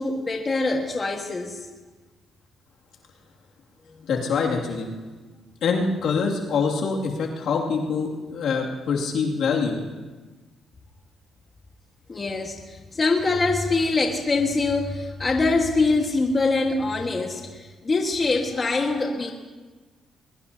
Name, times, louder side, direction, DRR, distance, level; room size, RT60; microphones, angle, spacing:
voice 1, 0.0-1.6 3.9-4.0 12.1-19.3, left 3 dB, 30° left, 2 dB, 1.7 m, -24 dB
voice 2, 4.1-4.9 5.6-9.8, left 5 dB, 75° left, -1 dB, 2.5 m, -25 dB
21.5 x 21.0 x 2.9 m, 1.3 s
cardioid pair, 90°, 0 cm